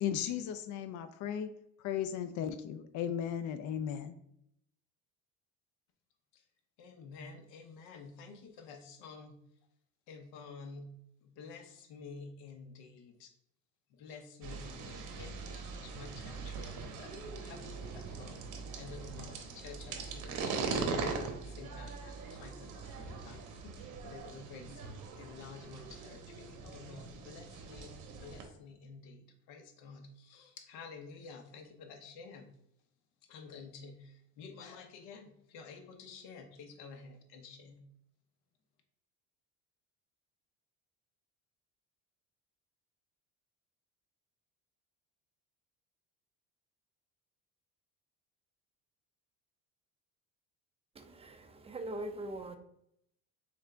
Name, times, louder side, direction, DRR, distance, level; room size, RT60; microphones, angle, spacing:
voice 1, 0.0-1.5 1.8-4.2, left 9 dB, 55° left, 10 dB, 0.5 m, -36 dB
voice 2, 6.8-9.4 10.1-13.3 13.9-18.4 18.7-21.0 21.4-32.5 33.3-37.9, left 4 dB, 80° left, 6 dB, 0.8 m, -51 dB
sound 1, 14.4-28.5, right 4 dB, 55° right, 0.9 m, -41 dB
voice 3, 51.0-52.6, right 1 dB, 15° right, 6 dB, 0.5 m, -42 dB
3.6 x 3.3 x 3.7 m, 0.74 s
cardioid pair, 105°, 37 cm